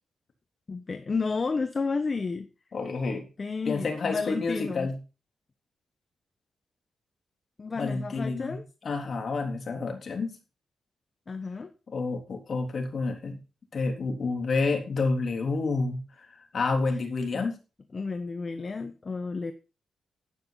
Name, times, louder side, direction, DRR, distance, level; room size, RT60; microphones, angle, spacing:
voice 1, 0.7-2.5 3.4-4.9 7.6-8.6 11.3-11.7 17.3-17.4 17.9-19.5, left 4 dB, 35° left, 8 dB, 1.1 m, -31 dB
voice 2, 2.7-3.3 3.7-5.0 7.7-8.6 8.8-10.4 11.9-13.4 13.7-16.3 16.5-17.6, left 3 dB, 50° left, 3 dB, 3.6 m, -29 dB
11.5 x 9.6 x 4.1 m, 0.31 s
cardioid pair, 100°, 0 cm